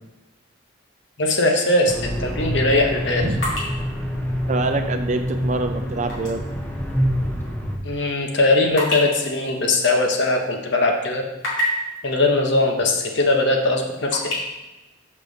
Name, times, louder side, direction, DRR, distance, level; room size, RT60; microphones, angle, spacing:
voice 1, 1.2-3.3 7.8-11.2 12.0-14.2, left 2 dB, 60° left, 2 dB, 1.0 m, -20 dB
sound 1, 1.9-7.8, equal, 10° left, 0.8 m, -26 dB
sound 2, 3.4-6.4 6.7-6.9 7.5-10.6 11.0-12.0 13.0-13.1 13.4-14.4, left 1 dB, 85° left, 2.5 m, -30 dB
voice 2, 4.5-6.4, right 2 dB, 40° right, 7 dB, 0.5 m, -25 dB
6.7 x 5.4 x 4.0 m, 1.1 s
head